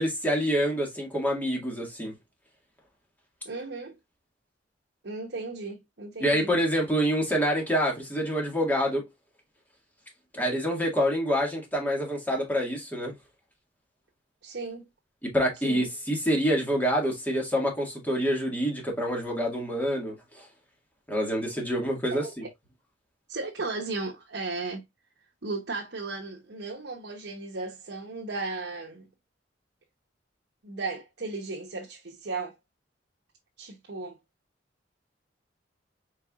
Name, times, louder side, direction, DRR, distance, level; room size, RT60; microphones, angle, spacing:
voice 1, 0.0-2.1 6.2-9.1 10.3-13.1 15.3-20.5 21.1-22.3, equal, 10° left, 1.9 m, -27 dB
voice 2, 3.4-4.0 5.0-6.5 14.4-14.9 15.6-15.9 22.1-22.5 23.3-24.8 25.4-29.1 30.6-32.5 33.6-34.2, right 3 dB, 70° right, 1.0 m, -35 dB
4.6 x 4.5 x 2.3 m
head